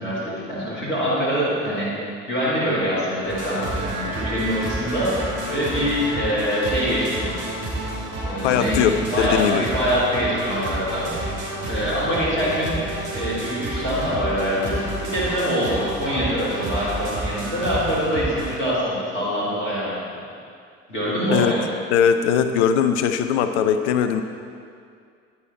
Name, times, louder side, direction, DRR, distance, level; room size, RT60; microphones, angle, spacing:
voice 1, 0.0-1.9 2.3-5.2 5.5-7.4 8.2-8.8 9.1-11.4 11.6-12.8 13.1-19.9 20.9-21.6, equal, 90° left, -9 dB, 2.4 m, -24 dB
sound 1, 3.2-18.6, right 2 dB, 55° right, 2.9 m, -30 dB
voice 2, 8.4-9.6 21.3-21.5 21.9-24.2, left 8 dB, 70° left, 9 dB, 0.6 m, -20 dB
10.0 x 10.0 x 4.2 m, 2.3 s
figure-of-eight pair, 50°, 36 cm